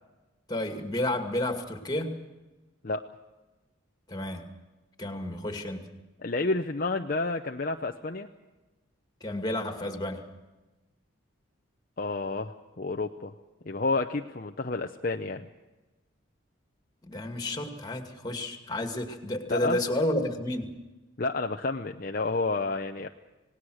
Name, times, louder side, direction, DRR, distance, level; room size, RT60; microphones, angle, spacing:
voice 1, 0.5-2.2 4.1-4.5 5.0-5.9 9.2-10.2 17.0-20.8, left 1 dB, 20° left, 5 dB, 2.3 m, -31 dB
voice 2, 6.2-8.3 12.0-13.3 13.7-15.5 19.5-19.8 21.2-23.1, left 3 dB, 45° left, 4 dB, 0.8 m, -30 dB
27.5 x 19.0 x 6.4 m, 1.1 s
head